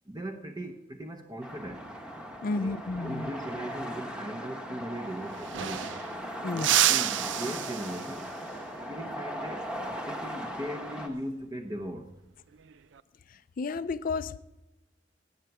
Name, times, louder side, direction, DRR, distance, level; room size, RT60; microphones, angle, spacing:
voice 1, 0.1-1.9 2.5-5.9 6.5-8.3 8.9-9.7 10.1-12.1, right 1 dB, 20° right, 0.8 m, -39 dB
sound 1, 1.4-11.1, equal, 5° right, 1.2 m, -38 dB
voice 2, 2.4-3.3 6.4-6.7 13.3-14.4, left 3 dB, 50° left, 0.4 m, -32 dB
sound 2, 4.9-5.0 5.2-6.2 6.6-8.3 10.8-11.1 12.5-13.0, right 12 dB, 85° right, 0.5 m, -29 dB
18.5 x 8.1 x 4.8 m
head